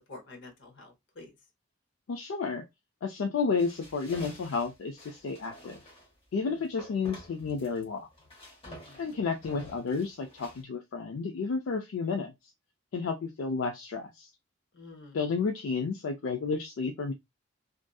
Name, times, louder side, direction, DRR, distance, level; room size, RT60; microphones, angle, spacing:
voice 1, 0.1-1.3 6.5-6.6 8.6-9.1 14.7-15.2, left 3 dB, 60° left, 0.8 m, -48 dB
voice 2, 2.1-2.6 3.0-5.8 6.3-8.1 9.0-12.3 12.9-14.3 15.1-17.1, left 5 dB, 75° left, 0.4 m, -31 dB
sound 1, 3.6-6.1 6.8-7.8 8.1-10.6, left 1 dB, 30° left, 1.1 m, -50 dB
2.6 x 2.5 x 2.2 m
head